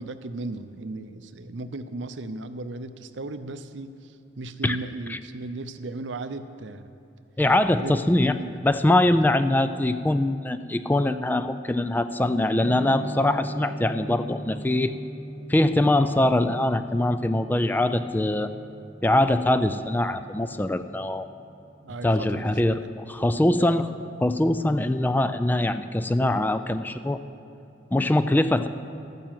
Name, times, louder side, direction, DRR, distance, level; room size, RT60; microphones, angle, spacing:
voice 1, 0.0-6.9 7.6-7.9 8.3-8.6 9.1-9.2 21.8-22.9 23.6-23.8, right 2 dB, 80° right, 11 dB, 0.6 m, -36 dB
voice 2, 7.4-8.3 8.6-14.9 15.5-18.5 19.0-21.3 22.0-23.9 24.2-27.2 27.9-28.7, left 1 dB, 10° left, 11 dB, 0.3 m, -23 dB
sound 1, 12.6-21.1, equal, 70° left, 1.6 m, -39 dB
13.0 x 9.2 x 7.5 m, 2.6 s
head